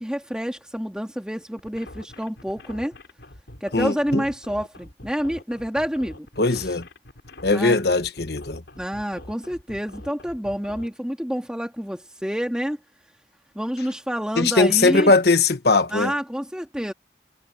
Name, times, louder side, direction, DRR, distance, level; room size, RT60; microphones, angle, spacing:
voice 1, 0.0-2.9 3.6-6.3 6.5-6.6 7.5-7.8 8.8-12.8 13.5-15.1 15.9-16.9, equal, 5° right, 2.4 m, -28 dB
sound 1, 1.6-10.9, left 1 dB, 90° left, 4.2 m, -44 dB
voice 2, 3.7-4.2 6.4-6.9 7.4-8.6 14.4-16.1, left 3 dB, 65° left, 1.3 m, -20 dB
head